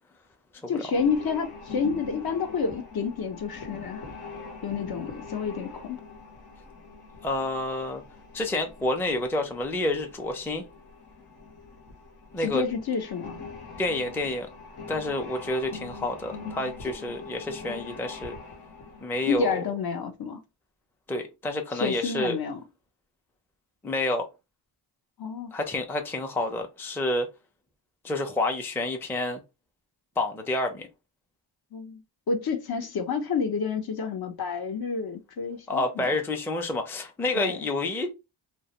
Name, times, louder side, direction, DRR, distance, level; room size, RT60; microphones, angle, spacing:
voice 1, 0.7-4.0 4.6-6.0 12.4-13.4 19.3-20.4 21.7-22.6 25.2-25.5 31.7-32.0 32.3-36.1 37.3-37.6, left 5 dB, 50° left, 0.7 m, -29 dB
sound 1, 0.9-19.5, left 4 dB, 80° left, 1.0 m, -43 dB
voice 2, 7.2-8.0 8.3-10.6 12.3-12.6 13.8-14.5 14.9-18.4 19.0-19.6 21.1-22.4 23.8-24.3 25.5-27.3 28.0-29.4 30.2-30.9 35.7-38.1, left 2 dB, 5° left, 0.4 m, -29 dB
2.3 x 2.1 x 2.8 m
cardioid pair, 50°, 49 cm